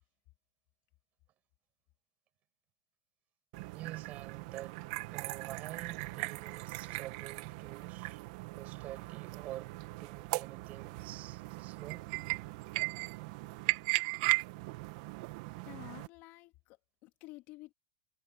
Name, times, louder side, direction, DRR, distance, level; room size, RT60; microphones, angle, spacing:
sound 1, 3.5-16.1, right 24 dB, 55° right, 1.9 m, -38 dB
voice 1, 3.7-4.8 5.1-8.3 8.6-12.1, right 14 dB, 35° right, 7.4 m, -48 dB
voice 2, 15.7-17.7, left 20 dB, 45° left, 3.0 m, -51 dB
supercardioid pair, 140°, 4 cm